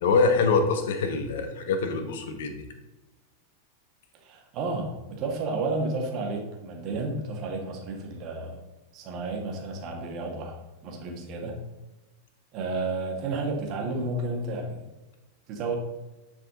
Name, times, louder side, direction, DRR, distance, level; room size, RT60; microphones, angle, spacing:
voice 1, 0.0-2.7, left 4 dB, 55° left, 7 dB, 1.1 m, -24 dB
voice 2, 4.2-8.6 8.9-10.6 10.8-11.6 12.5-14.9 15.5-15.8, right 3 dB, 40° right, 1 dB, 1.9 m, -31 dB
9.7 x 4.9 x 3.8 m, 1.1 s
figure-of-eight pair, 90°, 0 cm